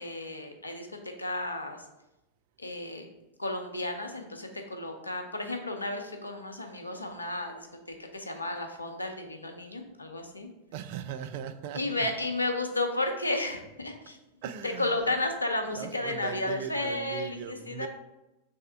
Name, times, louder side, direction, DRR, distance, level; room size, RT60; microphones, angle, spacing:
voice 1, 0.0-1.8 2.6-3.1 3.4-10.5 11.7-14.2 14.6-17.9, left 2 dB, 80° left, 4 dB, 0.6 m, -33 dB
voice 2, 10.7-12.1 14.4-15.2 15.7-17.9, right 8 dB, 50° right, 10 dB, 0.3 m, -39 dB
3.5 x 3.3 x 4.4 m, 0.96 s
figure-of-eight pair, 90°, 0 cm